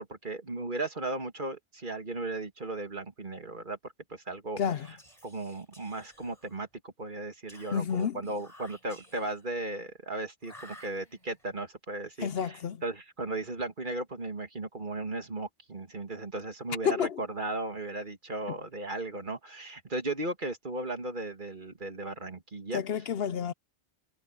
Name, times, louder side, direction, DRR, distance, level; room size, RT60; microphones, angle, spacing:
voice 1, 0.0-4.6 4.9-5.0 5.2-22.8, right 2 dB, 45° right, 2.4 m, -36 dB
Whispering, 4.8-6.7 7.5-9.5 10.4-11.5, equal, 35° left, 5.8 m, -54 dB
voice 2, 7.7-8.2 12.2-12.8 16.8-17.2 22.7-23.5, left 7 dB, 65° left, 0.8 m, -29 dB
omnidirectional pair, 1.1 m